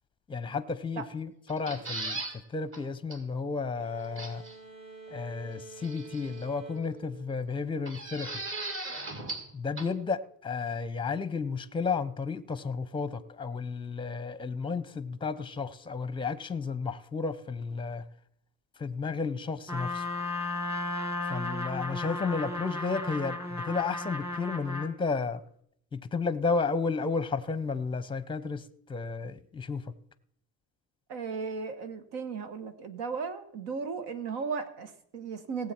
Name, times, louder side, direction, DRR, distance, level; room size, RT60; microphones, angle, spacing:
voice 1, 0.3-2.2 2.5-4.4 5.1-8.4 9.5-18.0 18.8-20.1 21.3-25.4 25.9-28.6 28.9-29.9, left 4 dB, 15° left, 0.6 m, -32 dB
sound 1, 1.5-2.4 2.7-2.8 3.1-3.2 4.2-4.6 5.8-6.4 7.9-9.5 9.8-9.9, right 2 dB, 35° right, 2.1 m, -37 dB
sound 2, 3.7-8.2, right 4 dB, 60° right, 6.5 m, -49 dB
Trumpet, 19.7-24.9, left 2 dB, 5° right, 1.4 m, -34 dB
voice 2, 31.1-35.7, right 5 dB, 80° right, 1.6 m, -36 dB
17.5 x 7.8 x 4.4 m
cardioid pair, 125°, 38 cm